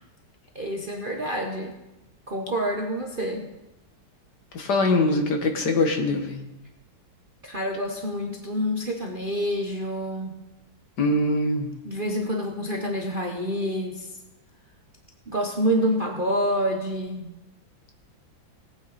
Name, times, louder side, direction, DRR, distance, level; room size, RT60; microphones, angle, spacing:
voice 1, 0.5-1.7 2.3-3.5 7.4-10.4 11.8-14.1 15.3-17.3, equal, 35° right, 1 dB, 0.9 m, -27 dB
voice 2, 4.5-6.4 11.0-11.7, left 2 dB, 60° left, 4 dB, 1.9 m, -23 dB
18.0 x 8.8 x 4.1 m, 0.98 s
omnidirectional pair, 2.1 m